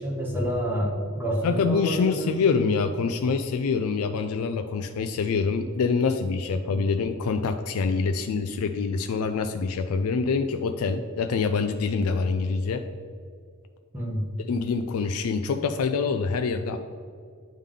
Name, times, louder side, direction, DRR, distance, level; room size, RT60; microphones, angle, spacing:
voice 1, 0.0-2.5 6.7-6.8 13.9-14.3, equal, 10° right, -4 dB, 1.3 m, -29 dB
voice 2, 1.4-12.8 14.5-16.8, left 5 dB, 75° left, 7 dB, 0.4 m, -25 dB
9.8 x 3.6 x 3.7 m, 2.2 s
head